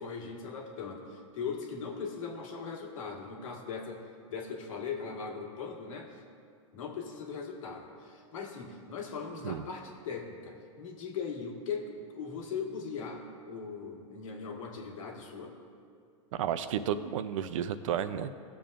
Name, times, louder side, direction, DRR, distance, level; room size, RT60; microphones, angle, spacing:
voice 1, 0.0-4.0 4.3-6.1 6.7-15.6, left 5 dB, 80° left, 1 dB, 1.6 m, -39 dB
voice 2, 16.3-18.4, right 9 dB, 70° right, 12 dB, 0.6 m, -32 dB
17.5 x 7.0 x 2.6 m, 2.3 s
hypercardioid pair, 125°, 17 cm